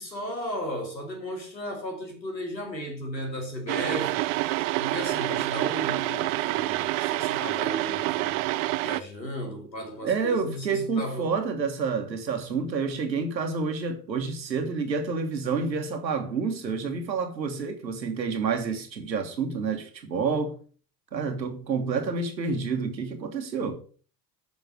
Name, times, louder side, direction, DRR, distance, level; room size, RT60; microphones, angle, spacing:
voice 1, 0.0-4.2 4.8-8.4 8.8-11.3 21.8-21.9, equal, 90° left, 2.4 m, -35 dB
sound 1, 3.7-9.0, right 18 dB, 55° right, 0.6 m, -27 dB
voice 2, 10.0-20.6 21.1-23.8, right 5 dB, 85° right, 1.5 m, -29 dB
7.3 x 5.4 x 6.1 m
figure-of-eight pair, 70°, 50 cm